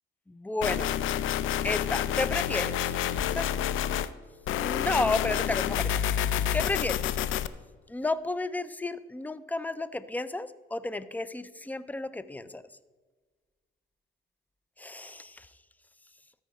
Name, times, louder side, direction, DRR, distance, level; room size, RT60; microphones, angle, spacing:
voice 1, 0.3-0.9 1.6-2.9 3.3-3.5 4.5-7.0 7.9-12.6 14.8-15.5, left 2 dB, 10° left, 15 dB, 0.4 m, -32 dB
sound 1, 0.6-4.1 4.5-7.5, left 10 dB, 80° left, 0.4 m, -28 dB
13.0 x 4.6 x 5.3 m, 1.4 s
cardioid pair, 90°, 20 cm